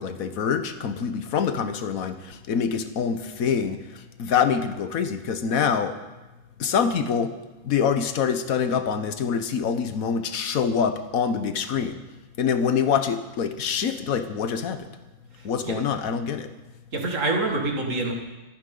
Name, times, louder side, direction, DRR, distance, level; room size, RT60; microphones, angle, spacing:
voice 1, 0.0-2.1 2.5-3.8 4.2-6.0 6.6-7.3 7.6-12.0 12.4-14.8 15.4-16.5, left 7 dB, 80° left, 9 dB, 1.4 m, -25 dB
voice 2, 15.4-15.7 16.9-18.1, right 2 dB, 65° right, 0 dB, 2.4 m, -26 dB
26.5 x 9.4 x 3.9 m, 1.1 s
omnidirectional pair, 1.4 m